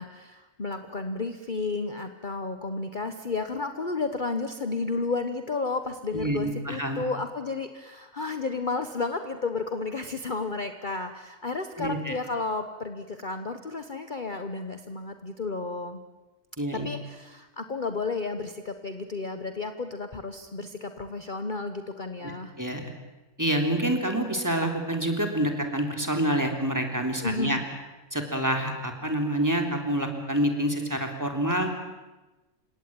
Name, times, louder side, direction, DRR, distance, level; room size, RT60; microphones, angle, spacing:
voice 1, 0.0-16.0 16.7-22.5 27.2-27.6, left 3 dB, 40° left, 8 dB, 1.2 m, -32 dB
voice 2, 6.1-7.0 11.8-12.1 16.6-16.9 22.2-22.3 22.6-22.9 23.4-27.6 28.1-31.7, right 1 dB, 15° right, 3 dB, 3.4 m, -27 dB
30.0 x 17.5 x 9.2 m, 1.1 s
omnidirectional pair, 1.4 m